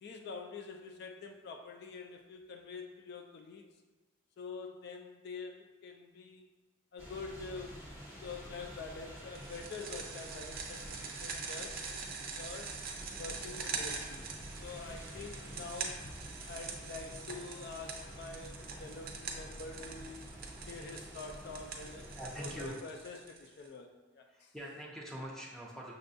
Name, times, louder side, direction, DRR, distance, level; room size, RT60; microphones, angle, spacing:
voice 1, 0.0-3.7 4.4-6.5 6.9-7.8 8.2-12.1 12.3-12.7 13.2-14.3 14.6-16.1 16.5-20.2 20.7-22.1 22.4-24.5, left 4 dB, 55° left, 3 dB, 0.3 m, -46 dB
sound 1, 7.0-22.7, equal, 20° left, 0.9 m, -49 dB
sound 2, 9.3-23.7, right 5 dB, 50° right, 0.5 m, -44 dB
voice 2, 22.1-22.8 24.3-25.9, equal, ahead, -3 dB, 0.6 m, -44 dB
6.1 x 2.2 x 2.6 m, 1.2 s
head